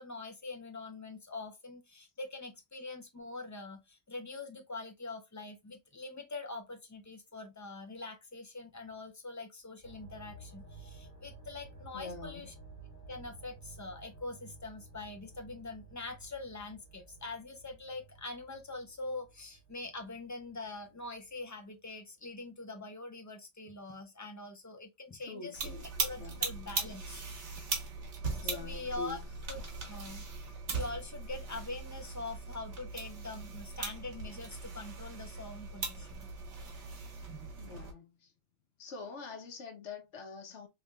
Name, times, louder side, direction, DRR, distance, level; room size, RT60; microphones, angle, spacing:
voice 1, 0.0-12.5 13.1-27.2 28.4-29.2 29.5-30.2 30.7-36.3, left 3 dB, 25° left, 0.4 m, -44 dB
sound 1, 9.8-21.5 21.8-21.9, right 3 dB, 55° left, 1.7 m, -54 dB
voice 2, 11.9-12.5 25.2-25.9 26.2-26.5 28.4-29.3 37.6-38.3 38.8-40.7, left 4 dB, 80° left, 1.0 m, -45 dB
sound 2, 25.5-37.9, right 4 dB, 85° right, 1.5 m, -39 dB
3.3 x 3.2 x 2.3 m
omnidirectional pair, 1.2 m